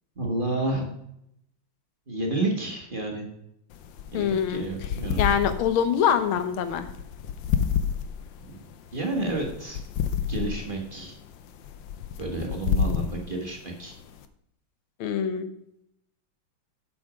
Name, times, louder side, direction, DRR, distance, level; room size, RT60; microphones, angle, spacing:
voice 1, 0.1-0.9 2.1-3.3 4.1-5.2 8.4-9.8 10.3-11.1 12.2-13.9, right 2 dB, 25° right, 0 dB, 1.5 m, -30 dB
sound 1, 3.7-14.3, left 7 dB, 70° left, 1.3 m, -31 dB
voice 2, 4.1-4.7 5.2-6.9 15.0-15.5, left 8 dB, 85° left, 10 dB, 1.7 m, -24 dB
8.1 x 7.2 x 5.0 m, 0.77 s
omnidirectional pair, 2.2 m